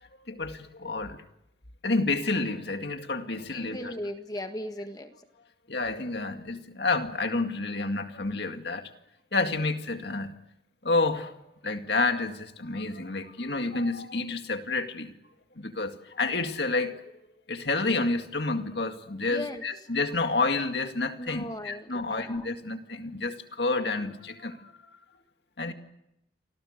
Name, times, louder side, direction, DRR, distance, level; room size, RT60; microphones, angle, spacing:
voice 1, 0.3-1.2 1.8-3.9 5.7-8.9 9.3-10.4 10.8-11.3 11.6-15.1 15.6-17.0 17.5-24.7 25.6-25.7, left 3 dB, 60° left, 2.1 m, -29 dB
voice 2, 3.5-5.1 19.3-19.6 21.2-22.4 25.7-25.8, left 1 dB, 20° left, 1.5 m, -37 dB
29.0 x 24.5 x 6.6 m
head